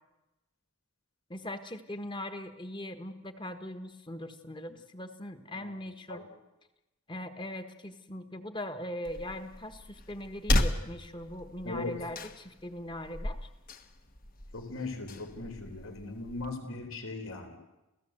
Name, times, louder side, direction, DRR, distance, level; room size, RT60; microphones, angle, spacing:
voice 1, 1.3-6.2 7.1-13.4, left 1 dB, 20° left, 8 dB, 1.5 m, -40 dB
sound 1, 9.0-16.5, left 1 dB, 40° left, 1.4 m, -35 dB
voice 2, 14.5-17.6, left 3 dB, 70° left, 6 dB, 3.9 m, -39 dB
29.5 x 16.5 x 7.9 m, 1.0 s
head